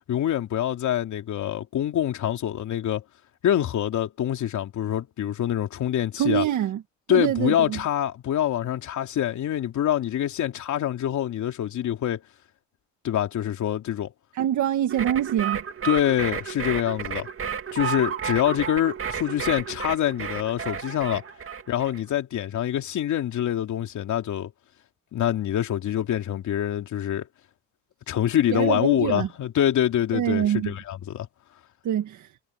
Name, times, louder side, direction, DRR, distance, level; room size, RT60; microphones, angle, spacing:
voice 1, 0.1-3.0 3.4-6.4 7.1-12.2 13.0-14.1 15.8-17.3 17.7-21.2 21.7-24.5 25.1-27.3 28.1-31.3, left 11 dB, 70° left, 3.1 m, -25 dB
voice 2, 6.2-6.8 7.1-7.8 14.3-15.6 28.5-29.3 30.1-30.8 31.8-32.3, right 11 dB, 75° right, 1.7 m, -25 dB
sound 1, 14.9-22.0, right 7 dB, 45° right, 2.4 m, -32 dB
cardioid pair, 90°, 30 cm